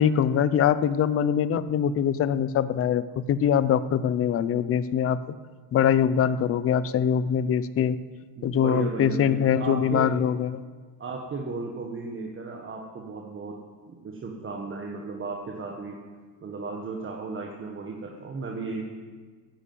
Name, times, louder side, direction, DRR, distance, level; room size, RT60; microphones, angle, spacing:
voice 1, 0.0-5.2 5.7-8.0 8.4-10.6, left 8 dB, 30° left, 15 dB, 0.6 m, -23 dB
voice 2, 8.4-10.1 11.0-13.6 13.9-16.0 16.4-18.9, right 4 dB, 25° right, 0 dB, 1.6 m, -35 dB
15.5 x 9.8 x 7.8 m, 1.5 s
cardioid pair, 140°, 45 cm